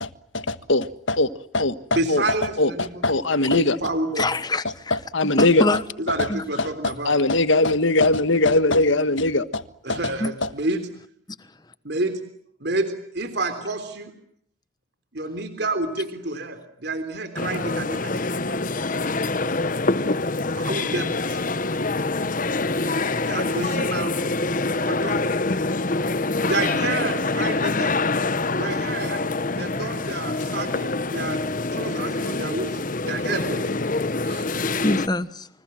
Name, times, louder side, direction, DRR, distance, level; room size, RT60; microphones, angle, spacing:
voice 1, 0.3-1.3 1.5-3.8 4.2-4.3 4.6-5.7 6.1-6.3 6.6-9.6 9.9-10.1 10.4-10.5, left 2 dB, 75° left, 1.6 m, -21 dB
voice 2, 1.9-3.2 3.5-4.3 6.0-7.1 9.8-10.8 11.8-12.2 12.6-14.1 15.1-18.4 18.8-18.9 20.5-21.4 23.3-24.1 24.8-25.3 26.4-27.9 28.6-29.2 29.6-31.4 31.7-32.8 33.1-33.7 34.2-34.5, right 2 dB, 55° right, 3.5 m, -29 dB
voice 3, 4.2-4.9 5.4-5.8 6.3-6.4 10.2-10.3 22.8-23.0 34.8-35.5, left 2 dB, 20° left, 1.2 m, -25 dB
sound 1, 17.4-35.1, left 3 dB, 40° left, 1.1 m, -25 dB
29.5 x 25.5 x 7.6 m
head